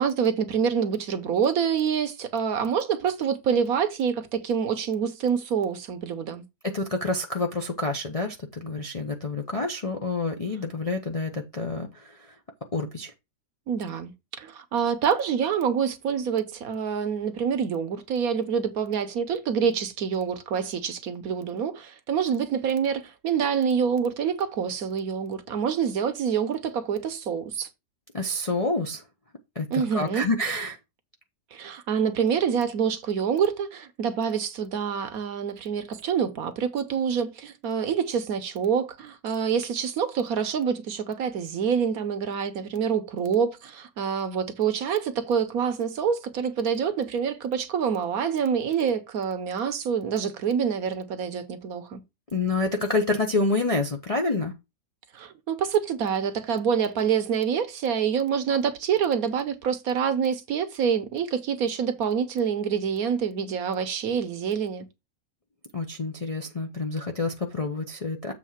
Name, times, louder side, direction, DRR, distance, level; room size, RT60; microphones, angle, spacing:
voice 1, 0.0-6.4 13.7-14.1 14.4-27.7 29.7-30.3 31.5-52.0 55.1-64.8, right 7 dB, 65° right, 1.2 m, -26 dB
voice 2, 6.7-12.3 12.7-13.1 28.1-29.0 29.5-30.8 52.3-54.5 65.7-68.3, left 2 dB, 40° left, 0.5 m, -28 dB
7.4 x 3.6 x 5.7 m
omnidirectional pair, 1.8 m